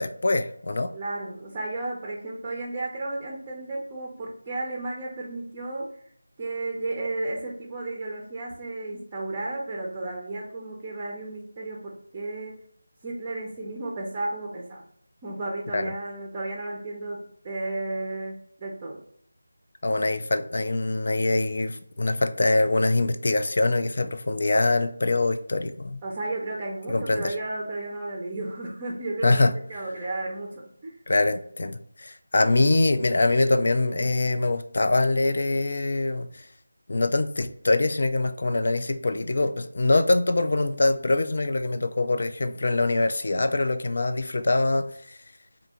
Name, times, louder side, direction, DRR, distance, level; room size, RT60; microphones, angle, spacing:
voice 1, 0.0-0.9 15.7-15.9 19.8-26.0 26.9-27.3 29.2-29.5 31.1-36.4 36.9-45.2, left 2 dB, 55° left, 9 dB, 0.3 m, -24 dB
voice 2, 0.9-5.9 6.4-12.6 13.0-14.8 15.2-19.0 26.0-31.0, right 2 dB, 15° right, -1 dB, 0.5 m, -33 dB
3.3 x 2.6 x 2.9 m, 0.64 s
figure-of-eight pair, 170°, 0 cm